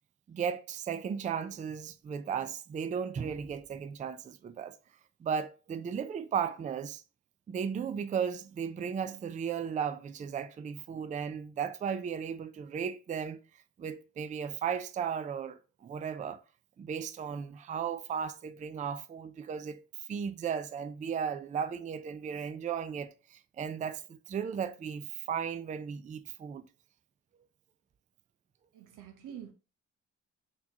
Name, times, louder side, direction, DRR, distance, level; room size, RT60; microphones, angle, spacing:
voice 1, 0.3-4.8 5.2-7.0 7.5-13.4 13.8-16.4 16.8-19.8 20.1-26.6, right 7 dB, 25° right, 0.3 m, -35 dB
voice 2, 28.7-29.5, right 9 dB, 85° right, 0.9 m, -46 dB
4.2 x 2.9 x 2.8 m
cardioid pair, 90°, 30 cm